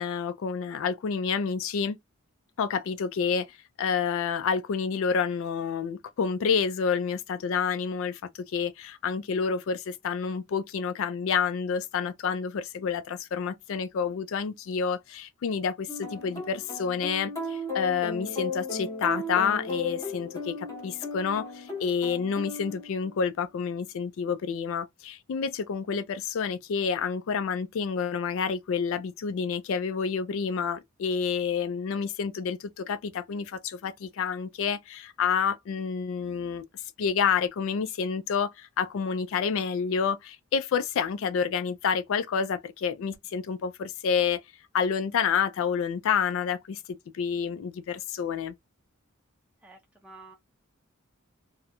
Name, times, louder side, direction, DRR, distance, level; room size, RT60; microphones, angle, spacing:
voice 1, 0.0-2.0 2.6-36.7 37.0-44.4 44.7-48.5, left 6 dB, 65° left, 0.3 m, -29 dB
sound 1, 15.9-23.3, left 2 dB, 15° left, 0.9 m, -36 dB
voice 2, 49.6-50.3, right 3 dB, 5° right, 0.5 m, -50 dB
2.3 x 2.0 x 2.8 m
head